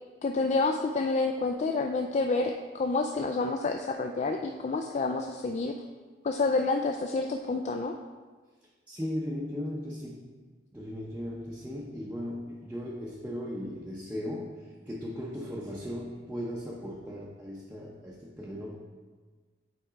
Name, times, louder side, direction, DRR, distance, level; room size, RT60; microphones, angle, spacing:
voice 1, 0.2-5.7 6.2-7.9, left 3 dB, 40° left, 4 dB, 0.3 m, -28 dB
voice 2, 8.9-10.3 10.7-18.8, equal, 10° right, -5 dB, 0.6 m, -37 dB
8.5 x 4.5 x 3.6 m, 1.4 s
head